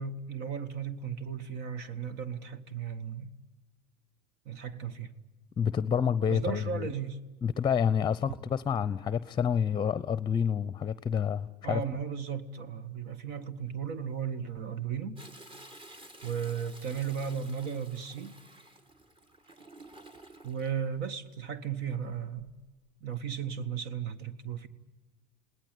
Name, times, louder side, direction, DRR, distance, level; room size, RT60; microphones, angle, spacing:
voice 1, 0.0-3.3 4.4-5.1 6.3-7.2 11.6-15.2 16.2-18.4 20.4-22.5 23.0-24.7, right 7 dB, 55° right, 1.7 m, -35 dB
voice 2, 5.6-6.8 7.4-11.8, left 7 dB, 20° left, 0.8 m, -28 dB
Toilet flush, 15.2-20.7 22.2-22.7 23.1-23.2, right 1 dB, 25° right, 2.6 m, -52 dB
29.0 x 19.0 x 9.8 m
hypercardioid pair, 90°, 20 cm